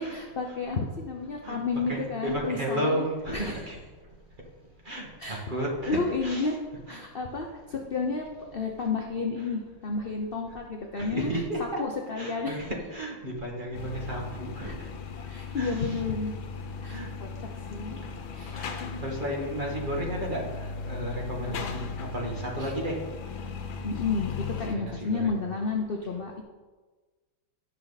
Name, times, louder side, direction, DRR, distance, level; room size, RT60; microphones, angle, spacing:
voice 1, 0.0-3.1 3.3-3.5 5.2-5.4 5.9-6.6 6.9-11.4 11.8-12.6 14.6-14.7 15.3-16.4 16.8-18.0 18.3-19.0 21.5-21.8 22.6-22.7 23.8-26.4, left 4 dB, 55° left, 1 dB, 0.6 m, -31 dB
voice 2, 1.9-3.8 4.8-6.5 6.9-7.0 11.0-11.8 12.2-14.9 15.2-15.3 15.5-16.0 16.9-17.1 18.5-23.0 24.7-25.4, right 1 dB, 25° right, -2 dB, 2.1 m, -33 dB
sound 1, 13.7-24.8, left 5 dB, 85° left, 1.7 m, -37 dB
17.0 x 5.7 x 4.1 m, 1.3 s
omnidirectional pair, 2.1 m